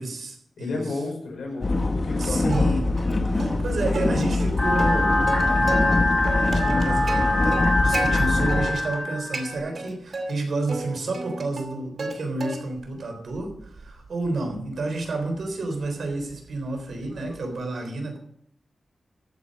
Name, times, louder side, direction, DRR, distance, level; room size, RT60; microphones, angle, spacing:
voice 1, 0.0-1.0 2.2-2.8 3.2-6.0 6.3-18.2, right 2 dB, 75° right, 4 dB, 3.7 m, -30 dB
voice 2, 0.6-2.7, left 3 dB, 90° left, 1 dB, 4.8 m, -32 dB
sound 1, 1.6-8.7, left 2 dB, 35° left, 1.5 m, -24 dB
Plucked string instrument, 2.5-3.1 3.4-3.5 3.9-6.0 6.2-8.1 8.5-9.0 9.3-10.3 10.7-12.1 12.4-12.9 13.3-17.5, right 2 dB, 55° right, 2.4 m, -34 dB
sound 2, 4.6-9.6, left 2 dB, 10° left, 4.6 m, -24 dB
14.5 x 8.9 x 5.3 m, 0.68 s
wide cardioid pair, 110°, 0 cm